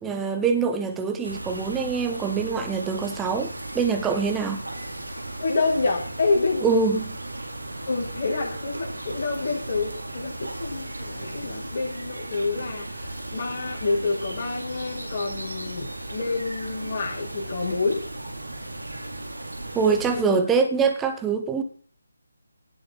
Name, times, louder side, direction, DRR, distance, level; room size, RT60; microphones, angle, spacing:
voice 1, 0.0-4.6 6.6-7.2 19.7-21.6, right 5 dB, 10° right, 1.9 m, -24 dB
sound 1, 1.2-20.2, right 1 dB, 80° right, 5.1 m, -36 dB
voice 2, 5.4-6.7 7.9-18.0 20.0-20.4, left 3 dB, 40° left, 7.2 m, -28 dB
18.5 x 8.0 x 5.8 m
figure-of-eight pair, 150°, 0 cm